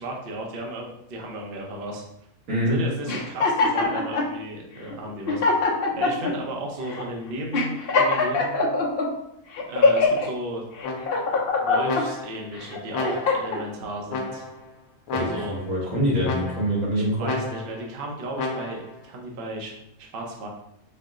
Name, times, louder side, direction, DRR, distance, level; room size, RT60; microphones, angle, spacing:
voice 1, 0.0-2.0 2.7-5.6 5.9-8.6 9.7-10.6 11.6-14.4 15.2-15.6 16.9-20.5, right 1 dB, 50° right, -1 dB, 0.8 m, -34 dB
sound 1, 3.1-4.3 4.9-5.0 5.3-6.3 6.9-7.1 7.5-9.1 9.5-10.3 10.8-12.0 12.6-13.6, left 3 dB, 55° left, 0.7 m, -22 dB
sound 2, 10.8-11.4 11.8-12.5 12.9-13.6 14.1-14.7 15.1-15.7 16.2-16.8 17.2-17.9 18.4-19.0, left 3 dB, 75° left, 1.1 m, -32 dB
voice 2, 15.1-17.3, equal, 85° right, -6 dB, 1.9 m, -25 dB
4.4 x 2.0 x 3.6 m, 0.75 s
omnidirectional pair, 1.5 m